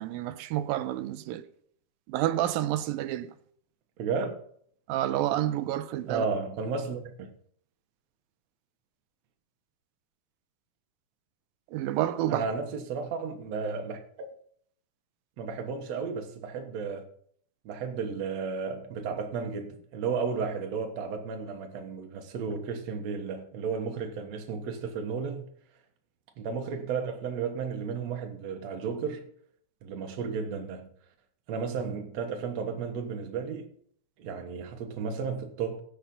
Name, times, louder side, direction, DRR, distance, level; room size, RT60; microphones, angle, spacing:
voice 1, 0.0-1.4 2.1-3.3 4.9-6.2 11.7-12.5, right 13 dB, 85° right, 2.4 m, -29 dB
voice 2, 4.0-4.3 6.1-7.3 12.3-14.0 15.4-17.1 17.7-25.4 26.4-29.3 29.8-30.9 31.5-33.7 34.2-35.8, right 5 dB, 55° right, 2.2 m, -33 dB
16.0 x 5.8 x 5.4 m
omnidirectional pair, 4.1 m